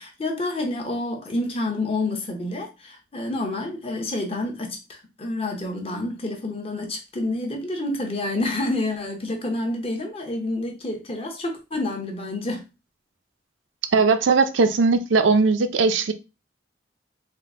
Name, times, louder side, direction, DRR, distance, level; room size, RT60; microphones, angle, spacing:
voice 1, 0.0-12.7, left 2 dB, 30° left, 0.8 m, -28 dB
voice 2, 13.9-16.1, right 4 dB, 80° right, 0.5 m, -19 dB
3.6 x 2.1 x 3.5 m
head